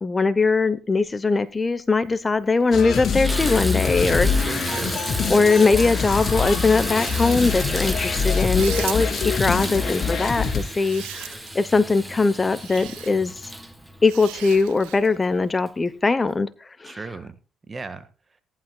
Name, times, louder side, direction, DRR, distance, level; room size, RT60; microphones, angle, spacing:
voice 1, 0.0-4.3 5.3-13.3 14.0-16.5 16.8-17.0, left 4 dB, 25° left, 15 dB, 0.9 m, -21 dB
Water tap faucet / Bathtub (filling or washing), 2.0-2.1 2.6-15.0 15.7-15.8 16.3-16.4, right 1 dB, 5° right, 1.9 m, -32 dB
sound 1, 2.7-10.6, left 5 dB, 55° left, 3.3 m, -25 dB
voice 2, 4.0-5.1 8.8-9.0 16.8-17.3 17.7-18.1, right 3 dB, 30° right, 11 dB, 1.5 m, -35 dB
sound 2, 6.8-7.5 8.4-9.3 10.5-11.7 12.6-13.1 14.0-15.1, right 17 dB, 85° right, 0.7 m, -38 dB
17.5 x 11.5 x 2.3 m, 0.35 s
supercardioid pair, 65°, 0 cm